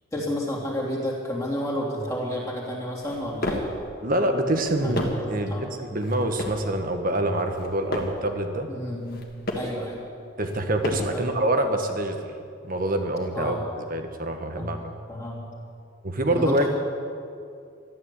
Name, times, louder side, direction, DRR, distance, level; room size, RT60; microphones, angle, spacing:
voice 1, 0.1-3.6 4.8-5.0 5.5-5.7 8.7-9.2 9.5-10.0 11.1-11.2 13.3-13.6 14.6-14.8 15.1-15.4 16.3-16.7, left 1 dB, 15° left, -4 dB, 3.0 m, -30 dB
sound 1, 3.0-3.8 4.5-5.4 6.0-6.7 7.4-8.3 9.0-9.8 10.5-11.3, left 1 dB, 50° left, 2.0 m, -32 dB
voice 2, 4.0-8.7 10.4-12.2 12.6-14.8 16.0-16.7, right 1 dB, 45° right, 5 dB, 1.5 m, -26 dB
13.5 x 12.0 x 8.3 m, 2.4 s
head